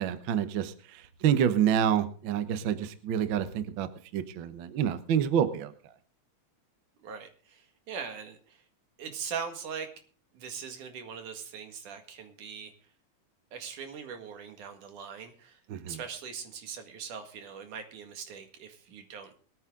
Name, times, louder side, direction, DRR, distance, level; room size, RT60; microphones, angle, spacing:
voice 1, 0.0-5.7 15.7-16.0, right 9 dB, 65° right, 11 dB, 1.2 m, -28 dB
voice 2, 7.0-8.6 9.0-9.9 10.3-12.7 13.5-15.6 15.9-19.3, right 6 dB, 80° right, 6 dB, 3.4 m, -41 dB
22.0 x 9.3 x 3.8 m, 0.43 s
omnidirectional pair, 3.5 m